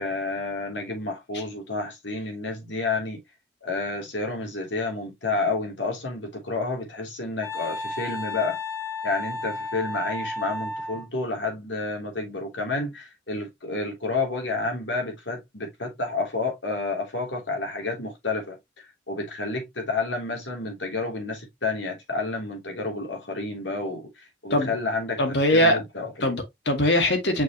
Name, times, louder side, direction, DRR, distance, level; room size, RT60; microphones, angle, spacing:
voice 1, 0.0-3.2 3.6-8.6 9.0-26.3, left 3 dB, 90° left, 3.4 m, -30 dB
Wind instrument woodwind instrument, 7.4-11.1, left 2 dB, 15° left, 1.1 m, -33 dB
voice 2, 25.2-25.8 26.2-27.4, left 1 dB, 70° left, 2.1 m, -21 dB
6.2 x 5.4 x 3.1 m
head